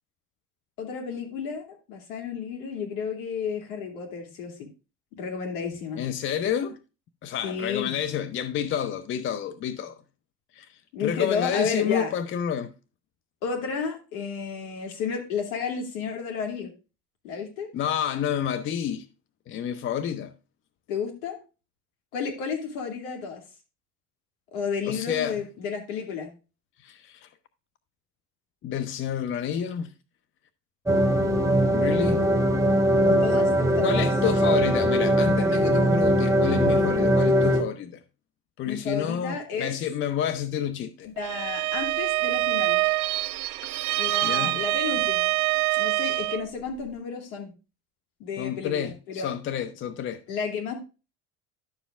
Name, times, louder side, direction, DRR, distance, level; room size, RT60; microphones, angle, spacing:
voice 1, 0.8-4.7 5.1-6.0 7.4-8.0 10.9-12.1 13.4-16.7 17.2-17.7 20.9-21.4 22.1-23.4 24.5-26.3 33.0-34.1 38.6-39.7 41.0-42.8 44.0-45.3 45.8-47.5 48.2-49.3 50.3-50.8, left 6 dB, 60° left, 2.7 m, -32 dB
voice 2, 6.0-6.8 7.2-9.9 10.5-10.7 11.0-12.7 17.7-19.1 19.5-20.3 24.9-25.4 26.8-27.3 28.6-29.9 31.7-32.3 33.8-38.0 38.6-41.1 44.2-44.6 48.4-50.2, left 9 dB, 25° left, 0.6 m, -29 dB
sound 1, 30.9-37.6, equal, 5° right, 1.0 m, -21 dB
Bowed string instrument, 41.2-46.5, right 18 dB, 40° right, 0.4 m, -25 dB
11.0 x 7.0 x 2.4 m
figure-of-eight pair, 65°, 47 cm